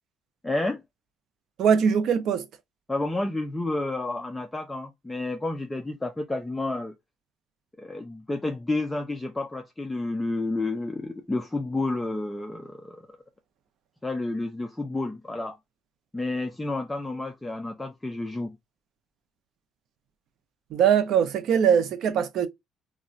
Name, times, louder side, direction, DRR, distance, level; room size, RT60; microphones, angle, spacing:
voice 1, 0.4-0.8 2.9-6.9 7.8-13.2 14.0-15.6 16.1-18.6, left 2 dB, 10° left, 0.3 m, -30 dB
voice 2, 1.6-2.4 20.7-22.5, right 8 dB, 60° right, 0.5 m, -21 dB
2.4 x 2.1 x 3.8 m
cardioid pair, 140°, 0 cm